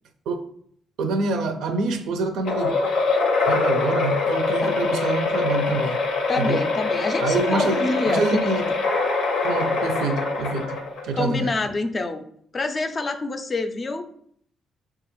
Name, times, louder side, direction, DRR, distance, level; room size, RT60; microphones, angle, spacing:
voice 1, 1.0-2.7 3.5-6.0 6.4-6.6 7.2-8.6 9.4-11.6, right 3 dB, 85° right, 7 dB, 0.4 m, -26 dB
sound 1, 2.4-11.2, left 4 dB, 80° left, 0.6 m, -24 dB
voice 2, 6.3-8.6 11.1-12.2 12.5-14.1, left 3 dB, 35° left, 7 dB, 0.4 m, -26 dB
4.6 x 2.3 x 3.0 m, 0.65 s
cardioid pair, 90°, 0 cm